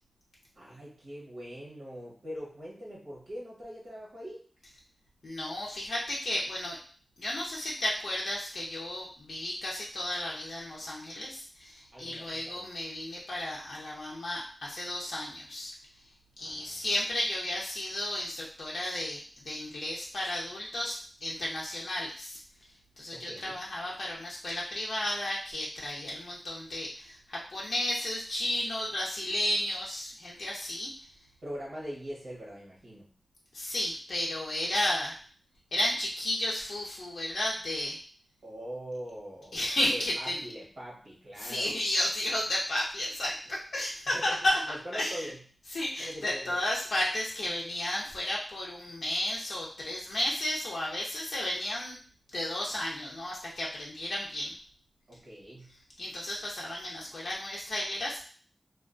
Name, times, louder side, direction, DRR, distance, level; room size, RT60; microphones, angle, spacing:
voice 1, 0.5-4.4 11.9-12.7 16.4-16.8 23.1-23.6 31.4-33.1 38.4-41.8 44.1-44.3 44.6-45.4 46.0-46.6 55.1-55.7, equal, 75° right, -4 dB, 0.8 m, -42 dB
voice 2, 5.2-6.8 7.2-15.7 16.4-22.4 23.0-31.1 33.5-35.1 35.7-38.0 39.5-40.3 41.4-44.6 44.9-45.3 45.7-52.0 52.3-54.5 56.0-58.2, left 1 dB, 85° left, -4 dB, 0.5 m, -33 dB
2.3 x 2.2 x 2.4 m, 0.43 s
wide cardioid pair, 90°, 0 cm